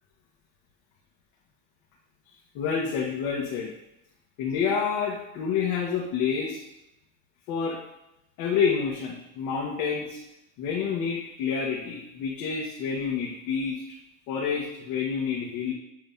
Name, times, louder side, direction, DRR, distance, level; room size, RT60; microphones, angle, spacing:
voice 1, 2.5-3.7 4.4-6.6 7.5-7.8 8.4-10.2 10.6-13.8 14.3-15.7, left 6 dB, 60° left, -4 dB, 1.3 m, -28 dB
7.8 x 3.0 x 5.2 m, 0.86 s
cardioid pair, 170°, 34 cm